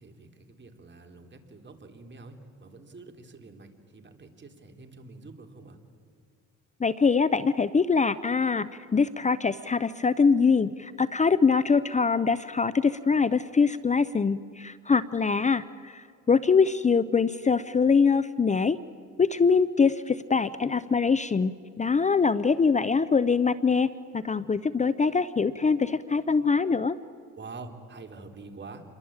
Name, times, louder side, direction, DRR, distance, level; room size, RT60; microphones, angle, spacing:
voice 1, 0.0-5.8 27.4-28.8, right 3 dB, 35° right, 4 dB, 3.7 m, -46 dB
voice 2, 6.8-18.8 19.2-27.0, left 5 dB, 25° left, 16 dB, 0.7 m, -23 dB
28.5 x 23.0 x 8.9 m, 2.2 s
cardioid pair, 90°, 30 cm